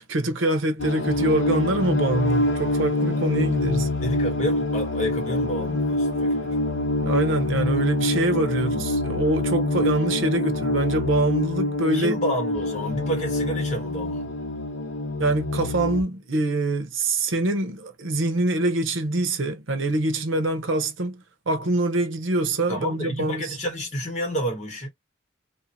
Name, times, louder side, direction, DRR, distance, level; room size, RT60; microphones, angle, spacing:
voice 1, 0.0-3.9 7.0-12.2 15.2-23.6, right 2 dB, 85° right, 0.8 m, -24 dB
sound 1, 0.8-16.0, left 2 dB, 65° left, 0.8 m, -26 dB
voice 2, 4.0-6.5 11.9-14.3 22.7-24.9, equal, 35° left, 1.7 m, -30 dB
2.9 x 2.7 x 2.8 m
head